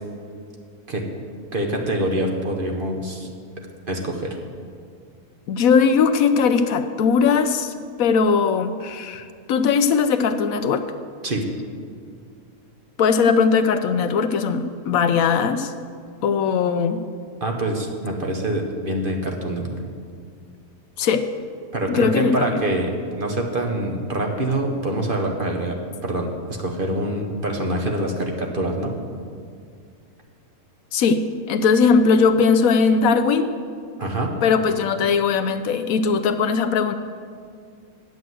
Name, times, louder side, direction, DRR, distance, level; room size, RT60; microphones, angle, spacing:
voice 1, 1.5-3.3 3.9-4.4 11.2-11.5 17.4-19.8 21.7-25.8 26.0-28.9 34.0-34.3, right 1 dB, 40° right, 2 dB, 1.2 m, -25 dB
voice 2, 5.5-7.7 8.0-10.8 13.0-15.7 16.2-17.0 21.0-21.3 21.9-22.5 30.9-33.5 34.4-36.9, left 5 dB, 75° left, 9 dB, 1.0 m, -19 dB
9.5 x 8.1 x 7.7 m, 2.2 s
omnidirectional pair, 1.6 m